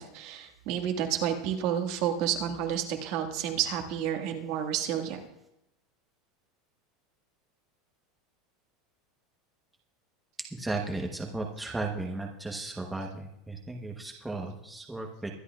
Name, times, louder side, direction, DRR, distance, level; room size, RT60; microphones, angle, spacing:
voice 1, 0.0-5.2, right 9 dB, 50° right, 4 dB, 1.7 m, -30 dB
voice 2, 10.5-15.3, right 2 dB, 5° right, 0 dB, 1.0 m, -35 dB
23.0 x 11.5 x 2.4 m, 0.85 s
supercardioid pair, 170°, 0 cm